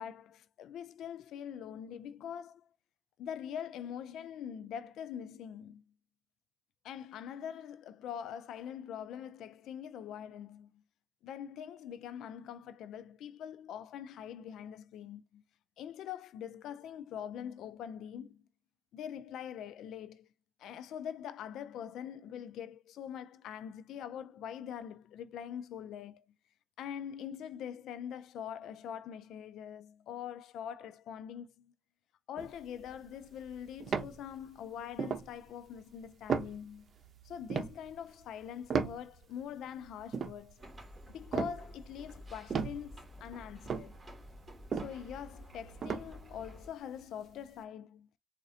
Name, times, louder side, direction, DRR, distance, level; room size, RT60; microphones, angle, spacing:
voice 1, 0.0-2.7 3.2-5.8 6.8-10.8 11.2-15.4 15.8-18.4 18.9-20.3 20.6-26.3 26.8-31.7 32.3-36.9 37.2-40.7 41.1-44.0 44.8-48.1, left 9 dB, 80° left, 0.3 m, -43 dB
sound 1, 32.4-34.6 34.9-35.3 35.8-35.9 36.1-39.5 39.8-42.2 42.5-46.5 46.9-47.0, right 6 dB, 55° right, 0.8 m, -36 dB
sound 2, 40.6-46.7, equal, 20° right, 1.8 m, -51 dB
4.0 x 2.5 x 2.6 m
cardioid pair, 90°, 0 cm